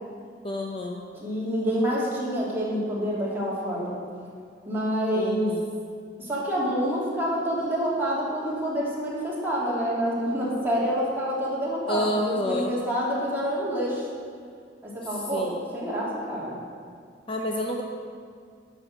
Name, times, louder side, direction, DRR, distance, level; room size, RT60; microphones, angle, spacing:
voice 1, 0.4-1.0 5.1-5.6 11.9-12.7 15.1-15.6 17.3-17.8, left 1 dB, 30° left, 1 dB, 0.6 m, -29 dB
voice 2, 1.1-4.0 4.6-5.5 6.2-14.1 14.8-16.5, equal, 15° right, -7 dB, 2.8 m, -27 dB
10.0 x 6.3 x 7.3 m, 2.2 s
head